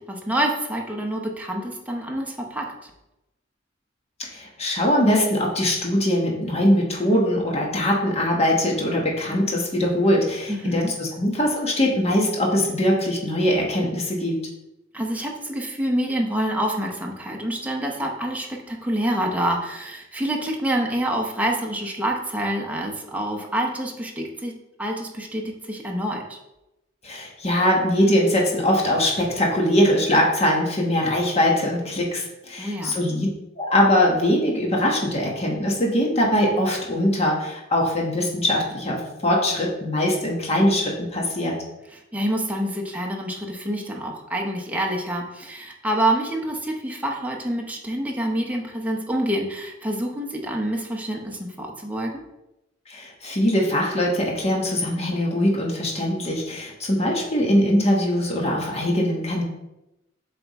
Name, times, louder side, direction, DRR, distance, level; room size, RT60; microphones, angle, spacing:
voice 1, 0.0-2.9 10.5-10.9 14.9-26.4 32.6-33.0 41.9-52.2, right 1 dB, 10° right, 0 dB, 0.8 m, -27 dB
voice 2, 4.2-14.4 27.0-33.3 33.6-41.6 52.9-59.4, left 1 dB, 35° left, -1 dB, 1.2 m, -22 dB
7.6 x 3.5 x 4.1 m, 0.93 s
head